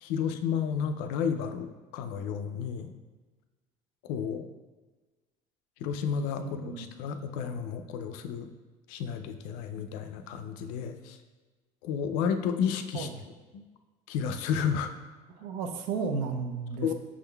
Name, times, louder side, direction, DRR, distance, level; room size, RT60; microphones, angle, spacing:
voice 1, 0.0-2.9 4.0-4.5 5.8-8.5 8.9-11.2 11.8-13.1 13.5-13.6 14.1-14.9 16.8-16.9, left 7 dB, 85° left, 8 dB, 0.4 m, -32 dB
voice 2, 6.4-6.9 12.9-13.2 15.3-16.9, right 5 dB, 85° right, 6 dB, 0.5 m, -33 dB
6.1 x 3.7 x 2.2 m, 1.3 s
cardioid pair, 125°, 14 cm